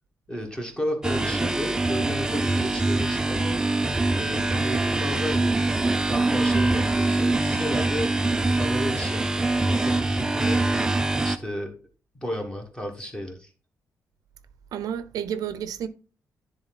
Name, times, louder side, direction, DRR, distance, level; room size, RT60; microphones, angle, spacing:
voice 1, 0.3-3.6 4.2-5.7 6.1-8.1 8.6-10.8 11.2-11.7 12.1-13.5, equal, 10° left, 1.5 m, -33 dB
sound 1, 1.0-11.4, right 2 dB, 10° right, 0.4 m, -24 dB
voice 2, 14.7-15.9, right 9 dB, 80° right, 0.6 m, -31 dB
10.5 x 3.8 x 4.1 m
wide cardioid pair, 165°, 6 cm